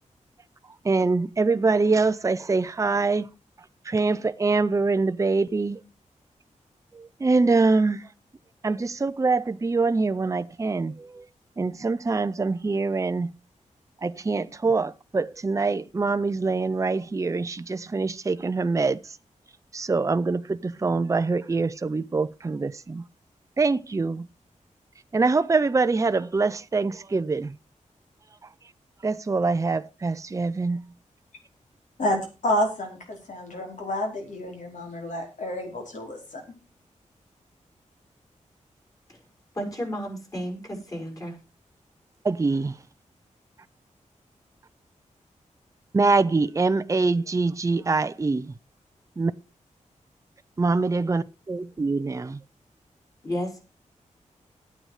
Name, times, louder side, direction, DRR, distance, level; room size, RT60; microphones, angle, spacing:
voice 1, 0.8-3.3 3.9-5.8 6.9-8.1 8.6-11.3 11.6-13.3 14.0-19.0 19.7-23.0 23.6-24.3 25.1-27.6 29.0-30.9 42.2-42.8 45.9-48.5 49.2-49.3 50.6-52.4, right 3 dB, 25° right, 0.6 m, -24 dB
voice 2, 32.0-36.4, left 1 dB, 70° left, 4.8 m, -29 dB
voice 3, 39.5-41.4 53.2-53.6, equal, 25° left, 5.5 m, -32 dB
12.0 x 9.0 x 4.9 m
wide cardioid pair, 110°, 13 cm